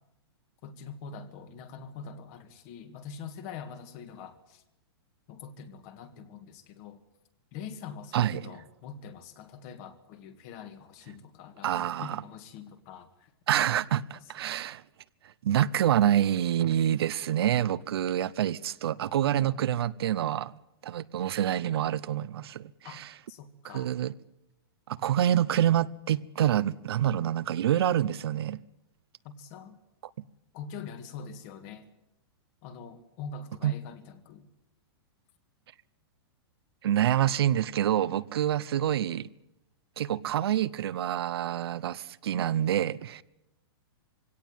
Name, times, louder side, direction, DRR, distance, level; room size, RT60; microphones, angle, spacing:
voice 1, 0.6-4.6 5.3-7.0 7.5-13.3 16.9-17.0 22.8-23.0 23.3-23.9 29.2-29.8 30.5-31.9 32.6-34.5, left 6 dB, 35° left, 1.9 m, -44 dB
voice 2, 8.1-8.5 11.6-12.2 13.5-14.8 15.2-20.5 20.8-23.1 23.7-24.1 24.9-28.6 33.6-33.7 36.8-39.3 40.0-43.2, right 11 dB, 70° right, 0.8 m, -27 dB
22.5 x 17.0 x 9.1 m
supercardioid pair, 165°, 14 cm